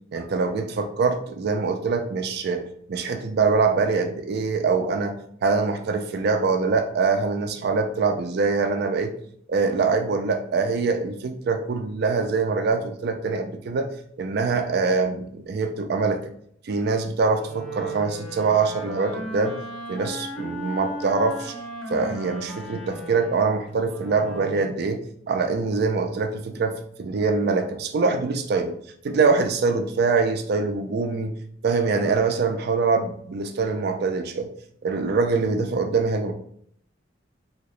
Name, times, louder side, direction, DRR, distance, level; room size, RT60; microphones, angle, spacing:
voice 1, 0.1-2.6 2.9-5.2 5.4-9.1 9.5-13.9 14.2-16.3 16.7-19.5 19.9-21.5 21.9-25.0 25.3-28.7 29.0-31.3 31.6-34.5 34.8-36.3, right 4 dB, 55° right, 7 dB, 0.4 m, -24 dB
Wind instrument woodwind instrument, 17.4-24.7, equal, 5° left, 0.5 m, -36 dB
2.9 x 2.7 x 3.1 m, 0.66 s
head